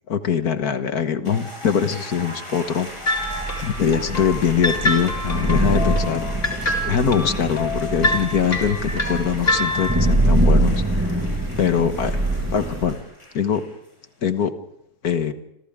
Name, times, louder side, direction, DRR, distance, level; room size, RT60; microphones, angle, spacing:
voice 1, 0.1-2.9 3.3-6.2 6.6-11.2 11.6-12.2 12.5-13.0 13.3-13.6 14.2-14.5 15.0-15.3, left 7 dB, 70° left, 10 dB, 1.8 m, -23 dB
sound 1, 1.2-13.9, equal, 15° left, 8.1 m, -39 dB
sound 2, 3.1-10.1, left 1 dB, 50° left, 4.2 m, -26 dB
Thunder / Rain, 3.2-12.9, right 1 dB, 10° right, 5.6 m, -24 dB
29.5 x 27.0 x 3.7 m, 0.80 s
omnidirectional pair, 1.7 m